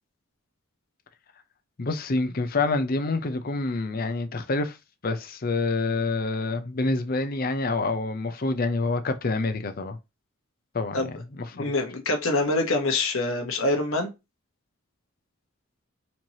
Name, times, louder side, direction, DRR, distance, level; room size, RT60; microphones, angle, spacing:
voice 1, 1.8-4.8 5.0-10.0 10.7-11.0 11.4-11.6, left 3 dB, 45° left, 0.6 m, -27 dB
voice 2, 11.5-14.1, left 2 dB, 75° left, 1.1 m, -25 dB
4.3 x 3.1 x 2.8 m
head